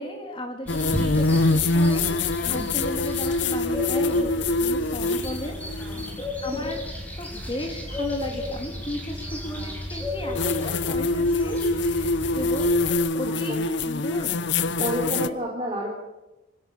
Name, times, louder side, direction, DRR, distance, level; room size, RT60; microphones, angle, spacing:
voice 1, 0.0-5.5 6.2-6.8 7.2-12.8 13.1-14.4 15.1-15.4, left 1 dB, 25° left, 3 dB, 3.3 m, -35 dB
sound 1, 0.6-12.9, left 1 dB, 10° left, 5.4 m, -34 dB
sound 2, 0.7-6.2 8.2-8.3 10.4-15.3, left 2 dB, 60° left, 0.7 m, -24 dB
voice 2, 5.9-6.6 13.2-13.6 14.8-15.9, right 1 dB, 25° right, -2 dB, 4.2 m, -31 dB
26.0 x 17.5 x 7.3 m, 1.0 s
head